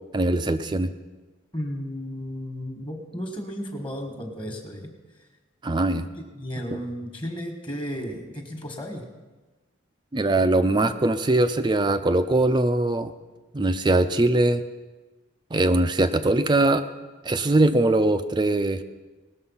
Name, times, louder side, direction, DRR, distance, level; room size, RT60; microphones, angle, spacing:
voice 1, 0.1-0.9 5.6-6.1 6.7-6.8 10.1-13.1 13.5-14.6 15.5-16.8 17.2-18.8, right 2 dB, 20° right, 10 dB, 0.4 m, -21 dB
voice 2, 1.5-4.9 6.1-9.0, equal, 25° left, 3 dB, 1.5 m, -34 dB
18.5 x 6.7 x 5.6 m, 1.2 s
head